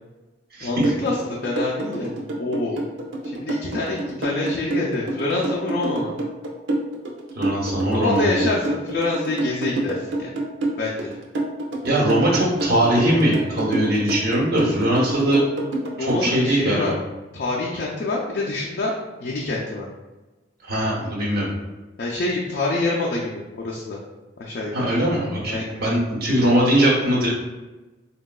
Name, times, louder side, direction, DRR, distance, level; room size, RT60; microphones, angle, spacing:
voice 1, 0.6-2.8 3.2-6.2 7.9-10.3 10.8-11.2 16.0-16.9 17.3-18.9 19.2-19.9 22.0-24.0 24.4-24.9 25.5-25.8, left 2 dB, 55° left, -4 dB, 0.4 m, -26 dB
sound 1, 0.8-16.2, right 2 dB, 90° right, 0.5 m, -26 dB
voice 2, 7.4-8.4 11.8-15.4 16.1-16.9 20.6-21.5 24.7-27.3, right 1 dB, 55° right, -6 dB, 1.0 m, -21 dB
3.7 x 2.2 x 2.3 m, 1.1 s
head